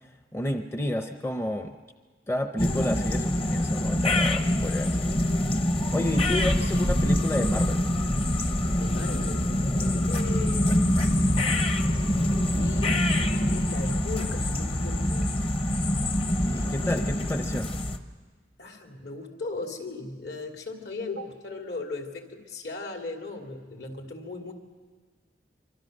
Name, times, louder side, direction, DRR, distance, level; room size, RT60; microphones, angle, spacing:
voice 1, 0.3-1.8 2.3-5.1 5.9-7.8 16.5-17.7, left 1 dB, 15° left, 6 dB, 0.7 m, -30 dB
sound 1, 2.6-18.0, left 1 dB, 30° left, 1.0 m, -25 dB
voice 2, 6.2-6.8 8.8-9.5 10.1-11.7 12.5-15.3 18.6-24.5, left 3 dB, 65° left, 2 dB, 2.8 m, -38 dB
25.0 x 24.5 x 6.6 m, 1.5 s
head